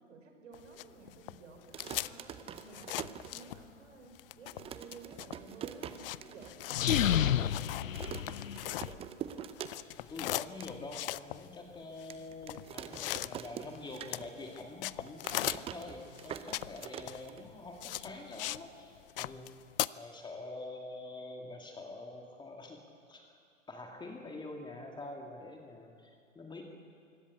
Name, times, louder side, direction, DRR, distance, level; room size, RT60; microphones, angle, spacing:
voice 1, 0.0-8.2 8.6-9.3, right 4 dB, 70° right, 4 dB, 5.0 m, -54 dB
sound 1, 0.5-3.9 4.1-9.3 9.5-18.7 19.0-19.9, left 16 dB, 45° left, 0.5 m, -39 dB
sound 2, 1.6-3.9 4.2-4.3 4.5-6.5 6.9-7.0 7.2-7.6 8.0-10.1 10.4-10.7 11.2-11.3 12.1-14.5 14.8-17.8, right 9 dB, 15° right, 0.6 m, -45 dB
sound 3, 6.7-8.9, left 10 dB, 80° left, 0.7 m, -30 dB
voice 2, 9.9-19.6 20.0-23.2 23.7-26.6, left 2 dB, 10° left, 2 dB, 2.0 m, -46 dB
24.0 x 16.5 x 8.3 m, 2.3 s
hypercardioid pair, 115°, 39 cm